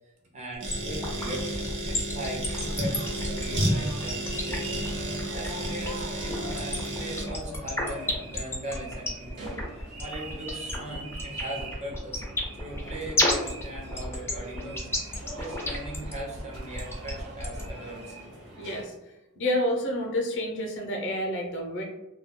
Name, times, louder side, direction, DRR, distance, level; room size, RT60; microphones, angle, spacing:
voice 1, 0.3-12.2 12.6-18.2, right 1 dB, 30° right, -2 dB, 0.7 m, -39 dB
sound 1, 0.6-7.3, right 1 dB, 65° right, 0.8 m, -31 dB
sound 2, 0.7-17.7, left 1 dB, 10° left, 0.5 m, -31 dB
sound 3, 2.6-18.8, right 1 dB, 85° right, 1.1 m, -43 dB
voice 2, 18.6-18.9 19.4-21.8, left 1 dB, 60° left, 1 dB, 0.6 m, -29 dB
2.3 x 2.2 x 3.5 m, 1.0 s
head